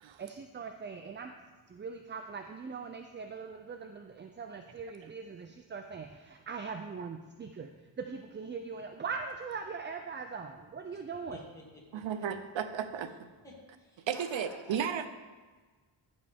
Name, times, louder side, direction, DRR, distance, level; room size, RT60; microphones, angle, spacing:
voice 1, 0.2-1.3 1.7-7.7 8.0-11.4, right 5 dB, 25° right, 5 dB, 0.4 m, -41 dB
voice 2, 11.3-12.3 13.4-15.1, left 1 dB, 5° left, -5 dB, 2.5 m, -52 dB
voice 3, 11.9-13.1 14.1-15.1, right 8 dB, 70° right, 9 dB, 0.8 m, -34 dB
14.0 x 5.4 x 3.5 m, 1.4 s
wide cardioid pair, 115°, 48 cm